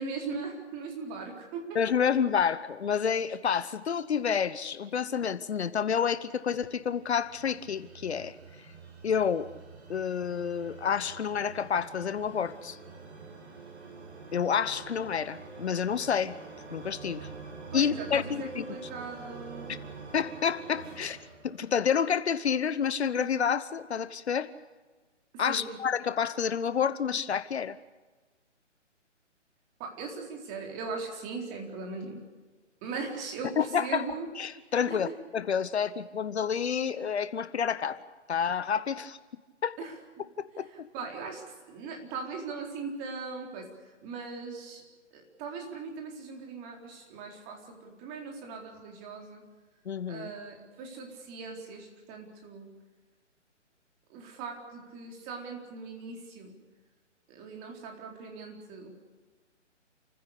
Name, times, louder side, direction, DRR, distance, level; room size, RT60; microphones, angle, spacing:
voice 1, 0.0-1.8 17.7-19.7 25.3-25.8 29.8-32.2 32.8-33.5 33.8-34.3 34.9-35.0 39.8-39.9 40.7-41.4 41.7-43.7 44.0-44.8 45.1-49.4 50.1-52.7 54.1-56.6 57.3-58.9, right 4 dB, 25° right, 1 dB, 4.1 m, -39 dB
voice 2, 1.7-8.4 9.0-9.5 9.9-12.8 14.3-16.4 16.7-17.3 17.7-18.6 20.1-21.2 21.4-24.5 25.4-27.8 33.6-34.1 34.4-38.0 38.3-39.2 39.6-39.8 40.4-40.9 49.8-50.3, left 7 dB, 60° left, 14 dB, 1.0 m, -29 dB
sound 1, 6.1-22.3, right 4 dB, 60° right, 6.2 m, -47 dB
28.5 x 15.5 x 8.3 m, 1.3 s
figure-of-eight pair, 145°, 37 cm